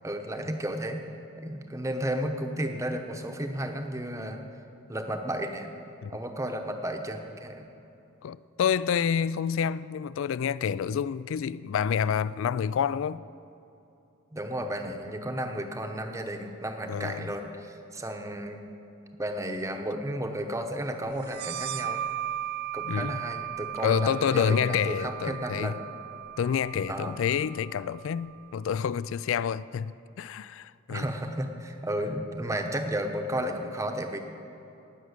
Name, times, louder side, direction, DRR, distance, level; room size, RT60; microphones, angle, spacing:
voice 1, 0.0-1.0 1.4-4.4 4.9-5.7 6.1-7.7 14.3-18.6 19.2-22.0 22.7-25.8 26.9-27.2 30.9-34.2, right 1 dB, 15° right, 0.9 m, -33 dB
voice 2, 8.2-13.2 16.9-17.3 22.9-23.2 23.8-25.7 26.4-29.9 30.2-31.0, left 7 dB, 60° left, 0.3 m, -28 dB
sound 1, 21.3-28.6, right 11 dB, 45° right, 0.3 m, -37 dB
18.5 x 6.2 x 8.0 m
head